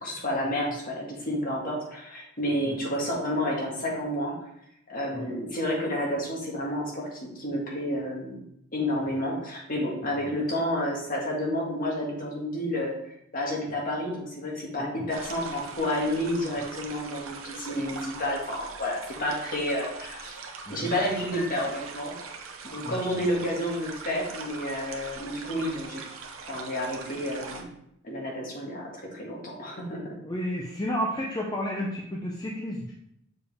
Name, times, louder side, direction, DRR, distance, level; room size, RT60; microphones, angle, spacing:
voice 1, 0.0-4.3 4.9-8.4 8.7-20.4 20.7-22.1 22.6-26.0 26.5-27.7 28.0-30.1, left 1 dB, 40° left, -2 dB, 1.6 m, -30 dB
sound 1, 15.1-27.6, right 4 dB, 70° right, 0.8 m, -41 dB
voice 2, 22.8-23.3 30.2-32.9, equal, 20° left, -2 dB, 0.6 m, -32 dB
6.9 x 4.6 x 3.4 m, 0.77 s
head